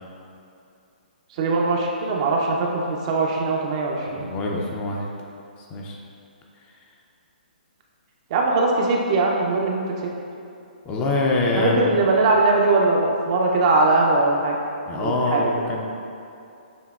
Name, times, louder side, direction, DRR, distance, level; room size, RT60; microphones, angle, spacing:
voice 1, 1.4-4.3 8.3-9.8 11.6-14.5 15.0-15.7, right 3 dB, 40° right, -1 dB, 0.5 m, -21 dB
voice 2, 4.1-5.1 5.7-6.0 10.8-12.1 14.9-15.9, left 2 dB, 20° left, -1 dB, 0.4 m, -24 dB
7.0 x 2.8 x 2.3 m, 2.6 s
hypercardioid pair, 140°, 5 cm